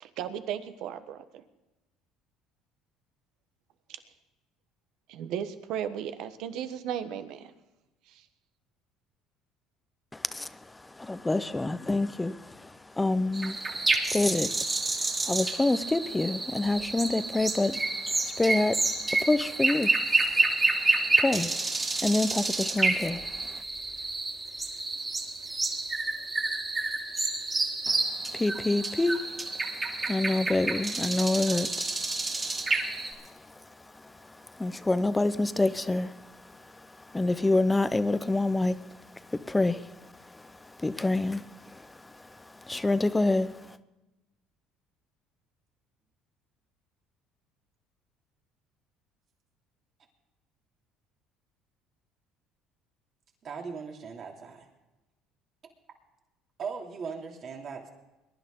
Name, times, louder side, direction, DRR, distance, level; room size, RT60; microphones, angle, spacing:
voice 1, 0.0-1.4 5.1-7.5 8.1-8.2, right 9 dB, 70° right, 10 dB, 1.2 m, -35 dB
voice 2, 10.1-20.5 20.8-23.5 27.9-28.0 28.3-29.4 30.0-32.1 32.4-32.9 34.0-36.4 36.8-38.9 39.3-43.5, left 2 dB, 15° left, 14 dB, 0.8 m, -28 dB
sound 1, 13.3-33.1, right 2 dB, 25° right, 2.7 m, -29 dB
voice 3, 53.4-54.7 56.6-57.9, right 5 dB, 50° right, 1 dB, 2.9 m, -38 dB
21.5 x 11.0 x 3.8 m, 1.0 s
supercardioid pair, 90°, 0 cm